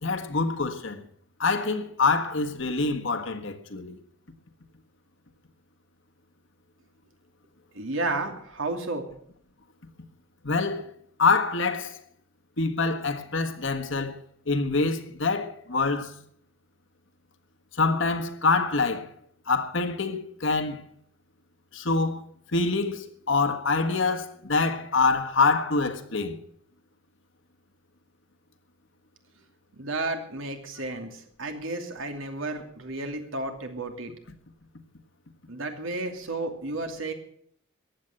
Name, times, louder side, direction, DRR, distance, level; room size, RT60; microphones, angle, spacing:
voice 1, 0.0-1.0 1.4-4.0 10.4-10.9 11.2-12.0 12.6-14.2 14.5-16.1 17.8-19.1 19.5-20.8 21.7-22.2 22.5-26.4, left 4 dB, 65° left, 1.6 m, -25 dB
voice 2, 7.7-9.1 29.8-34.1 35.5-37.1, right 2 dB, 75° right, 2.7 m, -32 dB
15.0 x 9.6 x 7.9 m
head